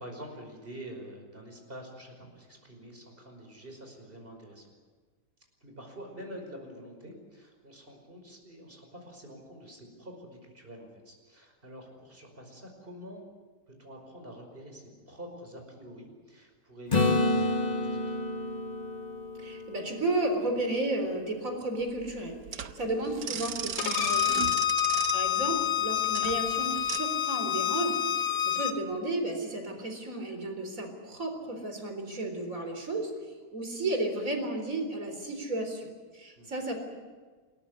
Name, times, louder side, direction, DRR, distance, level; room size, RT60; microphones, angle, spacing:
voice 1, 0.0-4.7 5.6-13.3 13.8-18.2 24.5-24.7 36.4-36.5, equal, 30° right, 3 dB, 5.6 m, -47 dB
Acoustic guitar / Strum, 16.9-20.7 25.5-25.6, left 2 dB, 25° left, 1.3 m, -29 dB
voice 2, 19.4-24.5 24.8-28.0 28.4-33.1 33.5-36.7, right 2 dB, 55° right, 5 dB, 4.4 m, -33 dB
sound 1, 21.8-27.0, right 9 dB, 80° right, 1.5 m, -36 dB
Bowed string instrument, 23.8-28.7, left 11 dB, 90° left, 1.7 m, -28 dB
28.0 x 14.0 x 9.8 m, 1.4 s
omnidirectional pair, 1.7 m